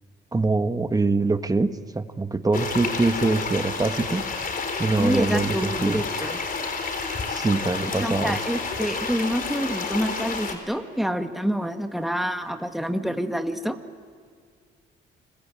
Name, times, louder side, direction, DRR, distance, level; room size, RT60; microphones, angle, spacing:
voice 1, 0.3-4.3 4.8-5.5 5.8-6.0 7.3-8.4, right 3 dB, 20° right, 9 dB, 1.4 m, -24 dB
sound 1, 2.5-10.5, left 4 dB, 45° left, 4.1 m, -30 dB
voice 2, 5.0-6.4 8.0-13.8, equal, ahead, 6 dB, 1.8 m, -27 dB
30.0 x 22.0 x 8.9 m, 2.1 s
cardioid pair, 90°, 20 cm